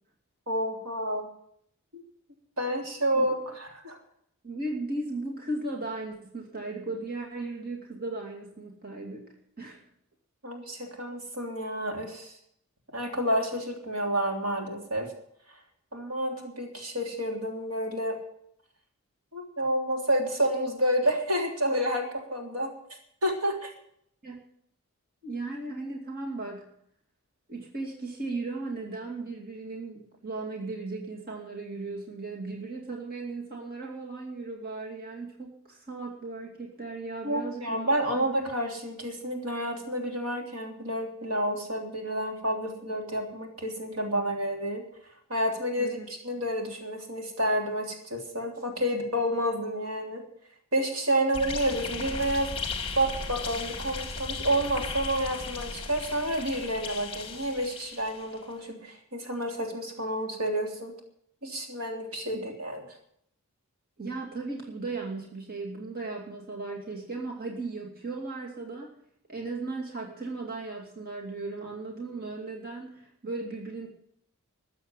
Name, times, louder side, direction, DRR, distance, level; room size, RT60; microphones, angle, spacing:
voice 1, 0.5-1.3 1.9-2.0 2.6-4.0 10.4-12.3 12.9-15.1 15.9-18.1 19.3-22.7 23.2-23.7 37.2-44.8 45.3-46.0 46.2-50.2 50.7-52.5 53.0-60.9 61.4-62.8, right 1 dB, 75° right, 1 dB, 3.3 m, -29 dB
voice 2, 4.4-9.8 24.2-24.4 25.2-26.7 27.5-38.3 45.8-46.1 62.3-62.5 64.0-69.0 69.3-73.9, right 3 dB, 40° right, -1 dB, 2.5 m, -36 dB
sound 1, 51.3-58.4, left 4 dB, 25° left, 1.6 m, -36 dB
14.0 x 8.1 x 9.1 m, 0.70 s
head